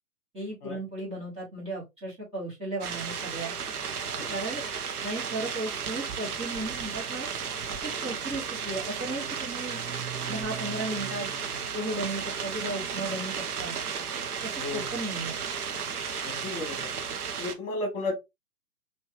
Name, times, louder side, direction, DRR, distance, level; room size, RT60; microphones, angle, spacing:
voice 1, 0.3-3.5 4.3-4.6 5.0-7.3 7.8-9.8 10.3-11.3 11.7-13.8 14.4-15.3, right 2 dB, 10° right, -7 dB, 1.5 m, -35 dB
sound 1, 2.8-17.5, right 6 dB, 70° right, 1.0 m, -34 dB
voice 2, 16.2-16.9 17.4-18.1, left 2 dB, 35° left, 2 dB, 2.2 m, -34 dB
4.4 x 2.7 x 3.0 m, 0.21 s
figure-of-eight pair, 130°, 47 cm